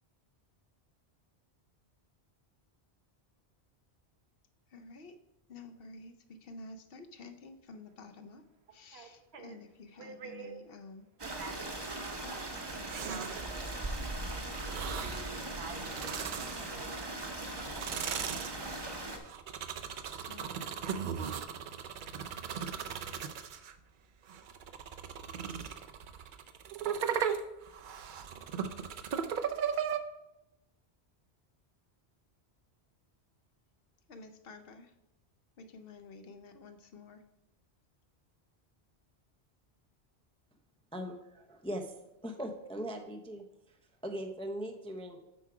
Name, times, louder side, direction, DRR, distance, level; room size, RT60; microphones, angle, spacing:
voice 1, 4.7-5.2 5.5-8.4 8.7-11.0 12.2-12.4 20.2-20.5 34.1-34.9 35.6-37.2, left 3 dB, 65° left, 9 dB, 0.8 m, -50 dB
voice 2, 8.9-9.6 10.0-10.5 11.2-12.5 12.8-17.5, right 4 dB, 75° right, 5 dB, 1.2 m, -50 dB
Stream, 11.2-19.2, right 2 dB, 25° right, 0.8 m, -39 dB
sound 1, 12.9-13.6 14.5-15.3 15.7-17.0 17.5-23.7 24.3-30.0, right 7 dB, 60° right, 0.6 m, -37 dB
voice 3, 40.9-41.9 42.2-43.8 44.0-45.2, equal, 10° left, 5 dB, 0.4 m, -40 dB
8.0 x 4.7 x 4.7 m, 0.91 s
omnidirectional pair, 1.1 m